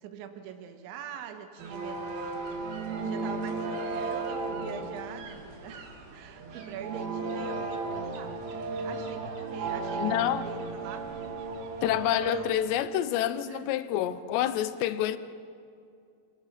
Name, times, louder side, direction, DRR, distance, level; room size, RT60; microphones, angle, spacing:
voice 1, 0.0-2.2 3.0-8.3 8.8-10.1 10.4-11.1 12.1-12.5 13.5-13.7, right 7 dB, 80° right, 3.6 m, -43 dB
sound 1, 1.6-12.5, right 3 dB, 60° right, 3.5 m, -35 dB
voice 2, 10.0-10.4 11.8-15.2, left 12 dB, 80° left, 2.8 m, -28 dB
28.5 x 19.0 x 5.9 m
omnidirectional pair, 5.3 m